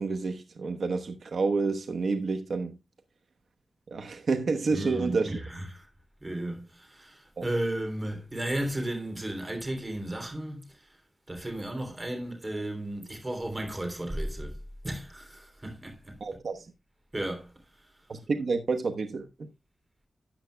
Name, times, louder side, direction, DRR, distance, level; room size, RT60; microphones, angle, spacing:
voice 1, 0.0-2.8 3.9-5.4 7.4-7.5 16.2-16.7 18.1-19.3, right 4 dB, 70° right, 1.0 m, -29 dB
voice 2, 4.7-5.9 6.2-10.7 11.3-14.6 14.8-16.2 17.1-17.5, right 1 dB, 25° right, 3.2 m, -34 dB
13.0 x 8.2 x 2.2 m
wide cardioid pair, 95°, 0 cm